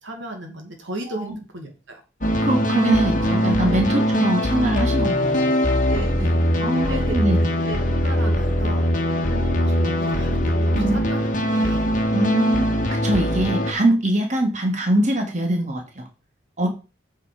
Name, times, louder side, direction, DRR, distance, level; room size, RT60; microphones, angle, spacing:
voice 1, 0.0-2.0 3.9-4.0 5.9-6.5 6.9-7.2 7.7-7.8 8.0-8.9 9.3-11.9 16.6-16.7, right 2 dB, 75° right, 4 dB, 2.1 m, -34 dB
sound 1, 2.2-13.7, equal, 40° left, 1.4 m, -21 dB
voice 2, 2.4-5.6 6.6-7.4 10.7-11.0 12.1-16.1 16.6-16.7, right 1 dB, 35° right, 3 dB, 1.9 m, -23 dB
8.4 x 5.6 x 5.0 m, 0.31 s
head